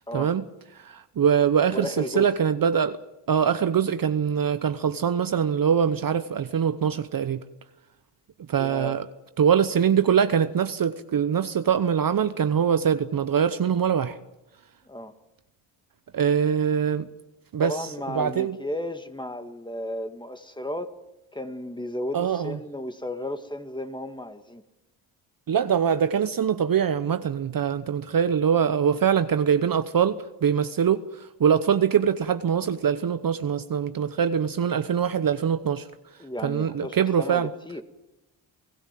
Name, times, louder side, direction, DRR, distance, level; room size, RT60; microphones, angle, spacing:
voice 1, 0.1-0.4 0.7-3.0 3.3-7.4 8.5-9.1 9.4-14.2 16.1-17.1 17.5-18.6 22.1-22.6 25.5-35.9 36.4-37.5, right 8 dB, 45° right, 1.0 m, -23 dB
voice 2, 1.7-2.3 8.6-9.0 14.9-15.1 17.6-21.0 21.3-24.6 36.2-37.8, left 1 dB, 10° left, 2.0 m, -34 dB
28.5 x 15.5 x 7.6 m
supercardioid pair, 65°, 48 cm